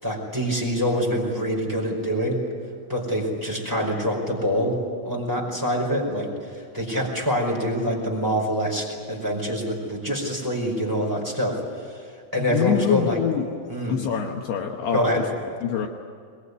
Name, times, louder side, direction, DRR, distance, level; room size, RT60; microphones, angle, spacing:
voice 1, 0.0-2.4 2.9-4.8 5.0-11.6 12.3-13.2 13.7-14.0 14.9-15.2, equal, 5° right, 0 dB, 4.4 m, -25 dB
voice 2, 12.4-13.5 13.9-15.1 15.6-15.9, left 9 dB, 70° left, 2 dB, 3.0 m, -25 dB
22.5 x 21.5 x 9.8 m, 2.1 s
omnidirectional pair, 5.2 m